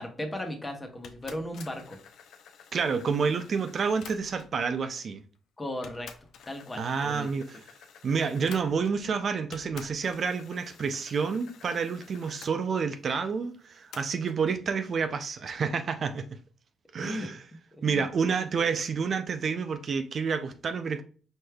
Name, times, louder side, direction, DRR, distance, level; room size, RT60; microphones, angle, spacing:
voice 1, 0.0-2.0 5.6-6.1 6.5-7.3 17.0-17.3 17.8-18.1, left 1 dB, 20° left, 1.1 m, -36 dB
sound 1, 1.0-4.6 5.3-5.4 5.8-9.1 9.5-12.5 13.9-14.4, left 7 dB, 75° left, 0.5 m, -50 dB
voice 2, 2.7-5.2 6.8-7.6 8.0-16.3 16.9-17.4 17.8-21.0, right 5 dB, 55° right, 0.4 m, -29 dB
4.4 x 3.3 x 2.3 m
supercardioid pair, 65°, 0 cm